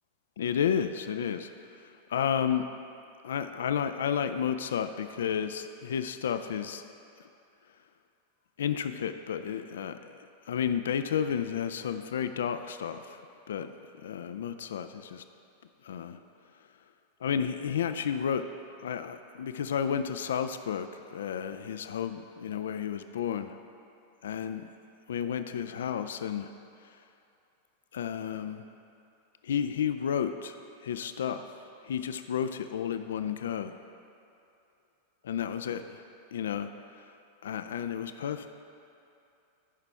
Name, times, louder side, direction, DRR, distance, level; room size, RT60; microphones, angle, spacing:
voice 1, 0.4-1.5 2.1-2.6 3.2-6.8 8.6-10.2 10.5-13.2 13.5-13.7 14.0-15.2 15.8-16.2 17.2-18.4 18.8-23.6 24.2-24.7 25.1-26.5 27.9-28.7 29.4-30.6 30.8-31.5 31.9-33.8 35.2-35.8 36.3-36.7 37.4-38.5, left 8 dB, 60° left, 9 dB, 0.3 m, -31 dB
14.5 x 5.8 x 3.4 m, 2.7 s
figure-of-eight pair, 90°, 0 cm